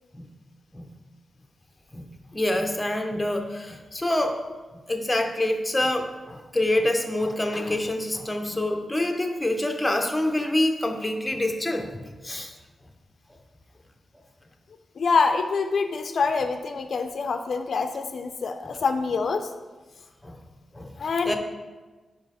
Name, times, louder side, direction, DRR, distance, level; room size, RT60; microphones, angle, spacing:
voice 1, 1.9-4.4 4.9-11.9 12.2-12.5 20.2-20.4 20.7-20.9 21.2-21.4, left 1 dB, 10° left, 4 dB, 0.6 m, -26 dB
voice 2, 15.0-19.5 21.0-21.4, left 4 dB, 60° left, 7 dB, 0.4 m, -25 dB
5.4 x 4.7 x 4.8 m, 1.3 s
wide cardioid pair, 125°, 0 cm